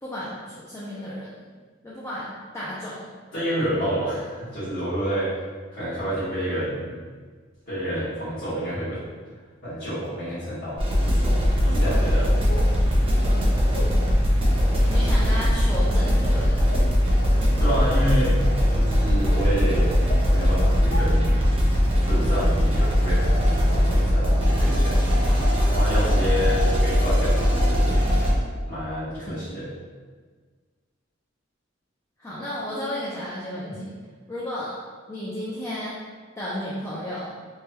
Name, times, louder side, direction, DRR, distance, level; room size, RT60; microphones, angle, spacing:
voice 1, 0.0-1.5 1.8-3.1 13.2-13.5 14.9-16.7 32.2-33.9 34.3-34.8 35.1-36.0 36.4-37.4, equal, 15° left, -8 dB, 0.4 m, -33 dB
voice 2, 3.3-5.4 5.7-6.9 7.7-9.0 9.6-12.3 17.6-18.3 18.7-20.0 20.3-21.4 22.0-25.2 25.7-27.9 28.7-29.7, equal, 50° left, -14 dB, 1.4 m, -29 dB
sound 1, 10.0-10.1 11.0-11.1 12.5-12.7 13.7-13.9 14.7-14.9 15.8-16.1 16.7-16.9 17.7-17.8 18.4-18.6 19.3-19.4 20.1-20.2 20.9-21.0 21.8-21.9 22.8-22.9 23.7-23.8 24.3-24.4, left 1 dB, 75° left, 0.6 m, -37 dB
sound 2, 10.8-28.3, equal, 30° right, 0.7 m, -20 dB
3.2 x 2.2 x 2.8 m, 1.5 s
head